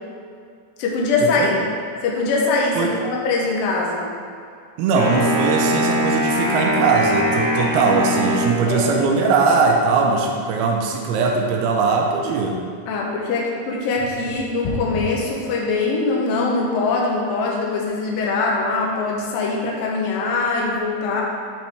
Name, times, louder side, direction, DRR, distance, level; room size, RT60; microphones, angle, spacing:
voice 1, 0.8-1.6 2.0-4.1 8.7-8.9 12.9-21.2, left 3 dB, 80° left, -2 dB, 2.0 m, -22 dB
voice 2, 4.8-12.6, right 4 dB, 85° right, 1 dB, 2.2 m, -20 dB
Wind instrument woodwind instrument, 4.9-9.2, equal, 65° right, 1.7 m, -22 dB
10.0 x 4.1 x 3.4 m, 2.3 s
omnidirectional pair, 5.1 m